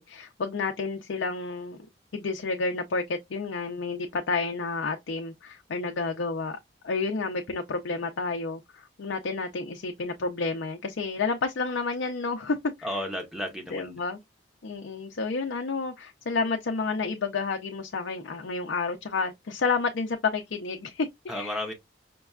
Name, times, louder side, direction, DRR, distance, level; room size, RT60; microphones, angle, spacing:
voice 1, 0.0-1.8 2.1-6.6 6.8-12.9 13.7-14.2 14.6-21.6, left 4 dB, 75° left, 0.5 m, -30 dB
voice 2, 12.8-14.0 21.3-21.7, equal, 5° right, 0.6 m, -33 dB
5.2 x 2.2 x 2.3 m
head